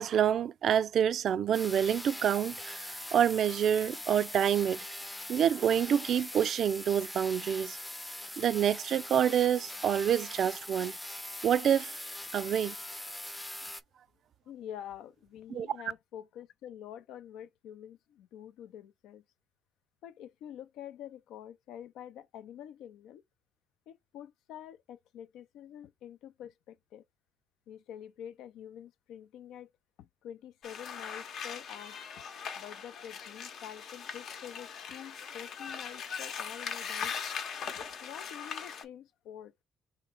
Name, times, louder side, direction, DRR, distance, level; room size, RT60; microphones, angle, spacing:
voice 1, 0.0-4.8 5.3-7.8 8.4-10.9 11.4-12.0 12.3-12.8 15.5-15.7, right 9 dB, 65° right, 0.3 m, -27 dB
sound 1, 1.5-13.8, left 1 dB, 10° left, 0.5 m, -42 dB
voice 2, 14.4-19.2 20.0-23.2 23.9-27.0 27.7-29.7 30.0-32.2 32.6-37.1 37.8-39.5, left 10 dB, 90° left, 0.4 m, -47 dB
sound 2, 30.6-38.8, left 6 dB, 70° left, 0.8 m, -40 dB
3.1 x 3.0 x 4.5 m
cardioid pair, 90°, 0 cm